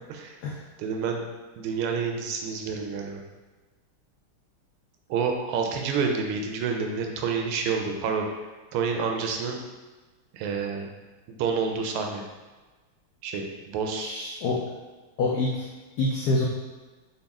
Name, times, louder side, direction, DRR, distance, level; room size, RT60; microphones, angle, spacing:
voice 1, 0.8-1.2 1.6-3.2 5.1-8.3 8.7-9.6 10.3-10.9 11.3-12.2 13.2-14.1, right 5 dB, 85° right, 2 dB, 1.4 m, -28 dB
voice 2, 14.0-14.6 15.2-15.7 16.0-16.5, left 2 dB, 85° left, -3 dB, 0.8 m, -26 dB
4.0 x 2.3 x 3.5 m, 1.3 s
omnidirectional pair, 2.3 m